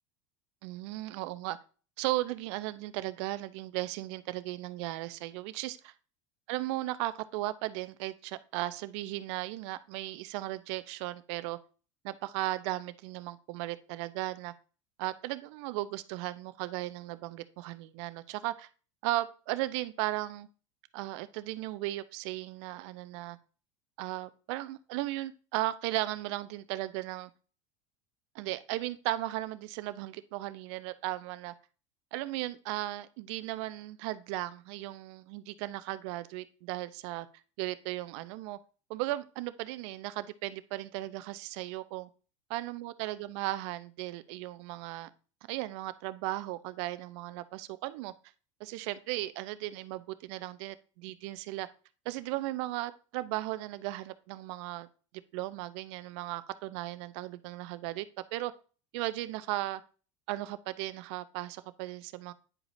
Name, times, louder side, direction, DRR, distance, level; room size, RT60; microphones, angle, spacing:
voice 1, 0.6-1.6 2.0-5.8 6.5-11.6 12.0-14.5 15.0-18.7 19.0-20.5 20.9-23.4 24.0-27.3 28.3-31.5 32.1-37.3 37.6-38.6 38.9-42.1 42.5-45.1 45.5-48.1 48.6-51.7 52.1-54.9 55.3-58.1 58.3-58.5 58.9-59.8 60.3-62.3, right 17 dB, 65° right, 15 dB, 0.6 m, -36 dB
9.8 x 4.8 x 2.6 m, 0.36 s
hypercardioid pair, 85°, 16 cm